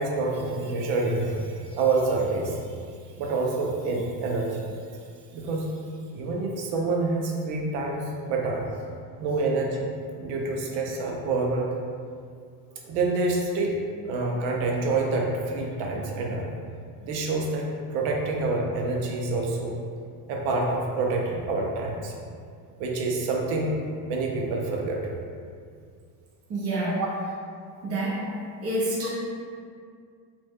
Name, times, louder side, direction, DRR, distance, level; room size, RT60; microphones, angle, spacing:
voice 1, 0.0-2.6 3.2-4.7 5.3-5.7 6.1-8.7 9.2-9.9 10.2-11.7 12.7-16.5 17.0-19.7 20.3-22.1 22.8-23.8 24.1-25.0 26.8-27.1, right 3 dB, 80° right, 0 dB, 0.7 m, -27 dB
voice 2, 26.5-27.0 27.8-28.3 28.6-29.1, right 1 dB, 35° right, -6 dB, 0.8 m, -28 dB
3.1 x 2.5 x 3.5 m, 2.2 s
cardioid pair, 125°, 43 cm